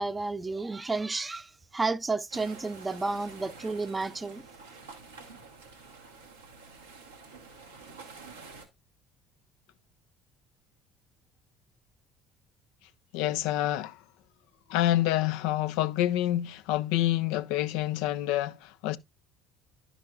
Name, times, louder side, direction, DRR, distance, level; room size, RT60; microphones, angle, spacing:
voice 1, 0.0-4.4, right 3 dB, 20° right, 0.5 m, -31 dB
sound 1, 2.3-8.7, right 4 dB, 90° right, 1.2 m, -48 dB
voice 2, 13.1-14.0 14.7-19.0, left 14 dB, 70° left, 0.4 m, -27 dB
10.5 x 6.1 x 2.4 m
hypercardioid pair, 60°, 0 cm